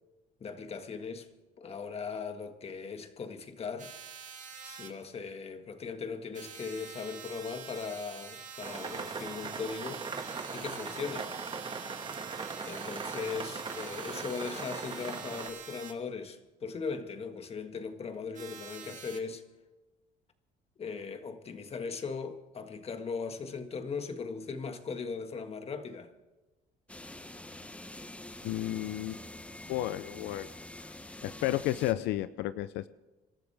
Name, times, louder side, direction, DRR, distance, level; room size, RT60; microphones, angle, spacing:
voice 1, 0.4-1.3 1.6-3.9 4.6-10.0 10.5-11.3 12.6-19.4 20.8-26.1, left 5 dB, 35° left, 1.7 m, -39 dB
sound 1, 3.8-4.9 6.3-15.9 18.3-19.2, right 7 dB, 50° right, 2.5 m, -46 dB
sound 2, 8.6-15.5, right 4 dB, 30° right, 1.5 m, -39 dB
sound 3, 26.9-31.9, left 1 dB, 5° left, 0.9 m, -46 dB
voice 2, 28.4-29.2 29.7-30.5 30.8-30.9 31.2-32.9, left 15 dB, 85° left, 0.5 m, -32 dB
26.5 x 13.0 x 3.5 m
cardioid pair, 110°, 17 cm